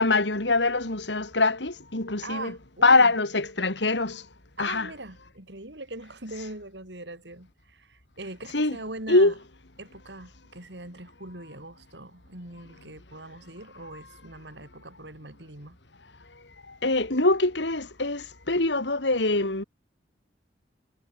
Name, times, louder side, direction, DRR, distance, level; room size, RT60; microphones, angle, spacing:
voice 1, 0.0-2.5 2.8-4.2 4.6-4.9 8.5-8.8 9.1-9.3 16.8-19.6, left 3 dB, 85° left, 3.0 m, -23 dB
voice 2, 2.2-3.1 4.6-9.4 9.8-15.8, right 2 dB, 80° right, 5.5 m, -41 dB
head